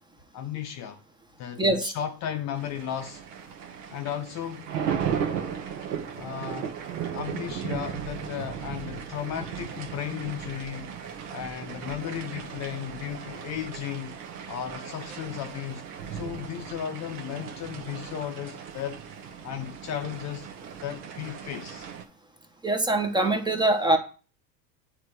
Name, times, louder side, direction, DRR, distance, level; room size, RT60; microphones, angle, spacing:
voice 1, 0.3-1.0 1.4-3.2 3.9-4.7 5.8-5.9 6.2-6.8 7.1-11.0 11.3-14.2 14.5-15.8 16.1-19.0 19.4-20.5 20.8-21.9, left 9 dB, 35° left, 0.6 m, -35 dB
voice 2, 1.6-1.9 22.6-24.0, right 2 dB, 10° right, 0.9 m, -23 dB
sound 1, 2.5-22.0, right 8 dB, 70° right, 1.2 m, -36 dB
7.8 x 3.3 x 4.8 m
hypercardioid pair, 100°, 49 cm